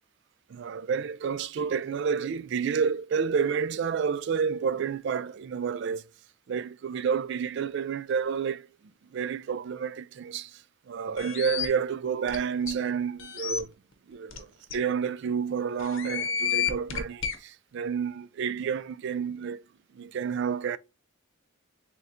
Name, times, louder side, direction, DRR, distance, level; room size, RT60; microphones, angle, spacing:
voice 1, 0.5-6.1 6.5-8.7 9.1-13.7 14.1-19.6 19.9-20.8, right 6 dB, 55° right, 0.3 m, -30 dB
sound 1, 11.2-11.7 12.3-12.4 12.7-12.8 13.2-13.6 14.3-14.4 14.7-14.8 15.8-17.4, left 8 dB, 65° left, 0.9 m, -30 dB
4.2 x 3.6 x 2.6 m
head